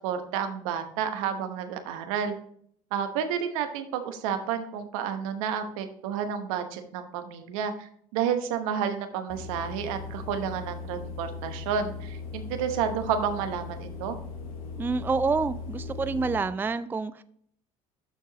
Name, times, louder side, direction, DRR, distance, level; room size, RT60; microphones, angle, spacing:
voice 1, 0.0-2.3 2.9-14.2, right 7 dB, 75° right, 8 dB, 1.0 m, -30 dB
sound 1, 9.3-16.4, left 4 dB, 85° left, 1.0 m, -38 dB
voice 2, 14.8-17.2, right 4 dB, 10° right, 14 dB, 0.4 m, -28 dB
12.5 x 4.6 x 2.9 m, 0.65 s
hypercardioid pair, 65°, 18 cm